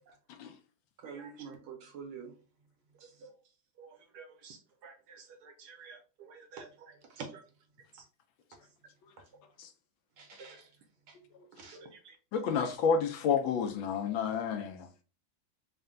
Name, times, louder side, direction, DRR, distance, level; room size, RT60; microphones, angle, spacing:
voice 1, 1.0-2.3 3.0-3.2 6.6-6.7 7.1-7.3 10.2-10.7 11.1-11.2 11.5-11.8, right 6 dB, 85° right, 1.9 m, -46 dB
voice 2, 4.1-6.7 7.9-8.0 10.4-10.5 11.7-12.2 12.5-12.6, right 5 dB, 70° right, 1.0 m, -52 dB
voice 3, 12.3-15.0, left 6 dB, 85° left, 1.4 m, -30 dB
4.3 x 2.2 x 3.6 m
omnidirectional pair, 2.1 m